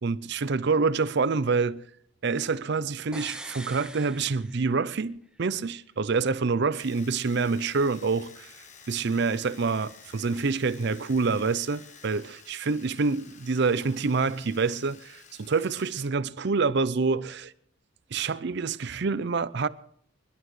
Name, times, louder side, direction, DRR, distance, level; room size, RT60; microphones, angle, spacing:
voice 1, 0.0-1.8 2.2-8.5 8.9-17.5 18.1-19.7, right 4 dB, 55° right, 0.5 m, -27 dB
sound 1, 3.1-5.0 5.3-5.4, right 1 dB, 5° right, 0.6 m, -42 dB
Domestic sounds home sounds, 6.8-16.1 16.4-17.2, left 6 dB, 35° left, 1.1 m, -51 dB
27.5 x 11.5 x 3.2 m
head